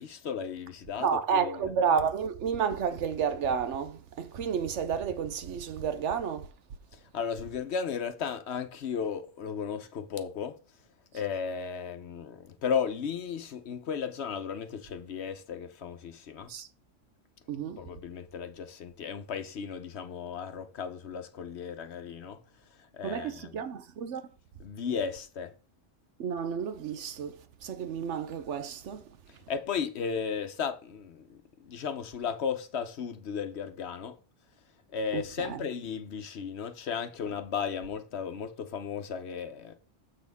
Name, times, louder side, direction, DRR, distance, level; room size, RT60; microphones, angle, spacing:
voice 1, 0.0-1.7 6.9-10.6 11.1-16.5 17.8-22.4 22.9-23.6 24.6-25.5 29.5-34.2 34.9-39.8, left 6 dB, 60° left, 1.0 m, -35 dB
voice 2, 1.0-6.5 16.5-16.7 17.5-17.8 23.0-24.2 26.2-29.1 35.1-35.6, right 7 dB, 70° right, 1.1 m, -31 dB
7.8 x 6.1 x 3.5 m
omnidirectional pair, 1.3 m